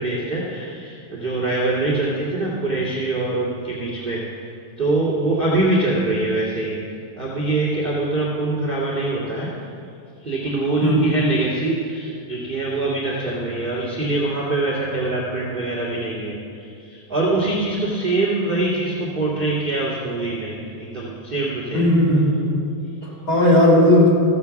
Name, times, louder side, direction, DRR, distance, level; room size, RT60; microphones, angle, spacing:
voice 1, 0.0-4.5 4.8-6.8 7.1-9.5 10.2-21.9, right 2 dB, 25° right, -6 dB, 1.1 m, -24 dB
voice 2, 21.7-22.6 23.3-24.1, left 1 dB, 25° left, -5 dB, 3.5 m, -15 dB
15.0 x 7.3 x 7.1 m, 2.4 s
omnidirectional pair, 4.7 m